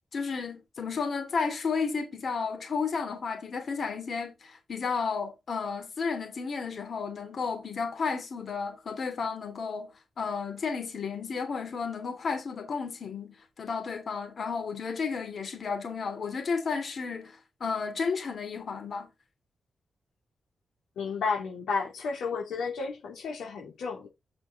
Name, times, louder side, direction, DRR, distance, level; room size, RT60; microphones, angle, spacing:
voice 1, 0.1-19.1, left 5 dB, 65° left, 3.2 m, -32 dB
voice 2, 21.0-24.1, left 5 dB, 90° left, 2.7 m, -32 dB
7.2 x 6.1 x 3.9 m
cardioid pair, 50°, 0 cm